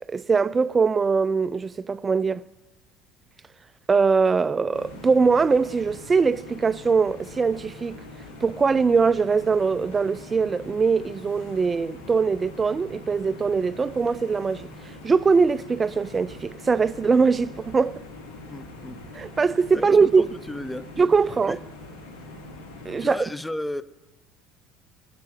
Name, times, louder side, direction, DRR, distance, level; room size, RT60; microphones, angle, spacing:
voice 1, 0.0-2.4 3.9-8.0 8.4-14.7 15.0-18.0 19.1-20.3 21.0-21.6 22.9-23.2, right 5 dB, 25° right, 0.4 m, -22 dB
sound 1, 4.7-23.1, left 1 dB, 70° left, 2.4 m, -43 dB
voice 2, 18.5-19.0 19.7-20.9 21.5-21.6 23.0-23.8, left 1 dB, 10° left, 0.7 m, -33 dB
22.5 x 7.7 x 4.6 m
figure-of-eight pair, 60°, 0 cm